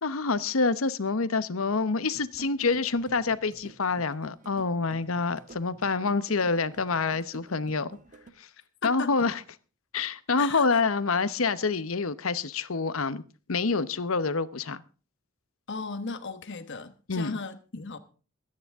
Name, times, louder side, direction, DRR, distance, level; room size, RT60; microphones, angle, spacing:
voice 1, 0.0-8.0 8.4-8.5 8.8-9.4 9.9-13.2 13.5-14.8 17.1-17.4, left 4 dB, 90° left, 0.9 m, -27 dB
sound 1, 2.1-8.3, right 4 dB, 40° right, 1.4 m, -51 dB
voice 2, 8.8-9.3 10.4-10.8 15.7-18.0, left 4 dB, 60° left, 1.2 m, -37 dB
23.0 x 9.9 x 3.6 m
head